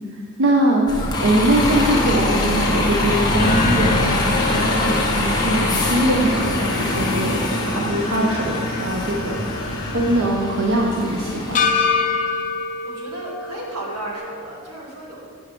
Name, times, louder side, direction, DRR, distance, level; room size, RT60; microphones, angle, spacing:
voice 1, 0.4-9.6 9.9-11.7, right 1 dB, 55° right, -1 dB, 0.6 m, -22 dB
Bus, 0.9-11.7, left 1 dB, 20° left, 0.7 m, -23 dB
sound 1, 3.4-7.7 8.0-8.1 11.5-14.2, left 5 dB, 35° left, 0.3 m, -26 dB
sound 2, 3.9-10.2, left 2 dB, 70° left, 0.8 m, -32 dB
voice 2, 12.8-15.2, right 1 dB, 85° right, -3 dB, 1.7 m, -34 dB
6.2 x 5.9 x 4.9 m, 2.2 s
head